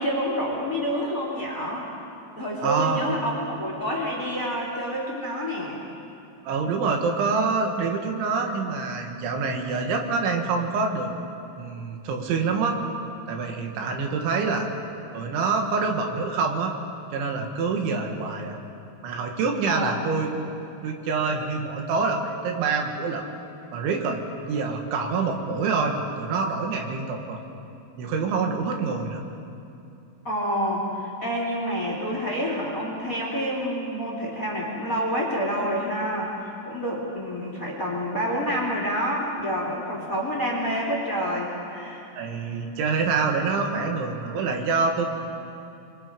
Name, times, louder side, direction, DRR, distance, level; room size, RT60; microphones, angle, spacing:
voice 1, 0.0-1.9 2.4-5.8 19.7-20.1 30.2-42.1, equal, 20° left, -2 dB, 2.9 m, -28 dB
voice 2, 2.6-3.2 6.5-11.1 11.6-12.8 13.3-14.7 15.1-16.7 17.1-18.6 19.0-20.3 20.8-23.3 23.7-24.2 24.5-27.4 28.0-29.2 42.2-45.2, right 4 dB, 80° right, 2 dB, 4.1 m, -26 dB
28.5 x 23.0 x 5.3 m, 2.7 s
omnidirectional pair, 5.4 m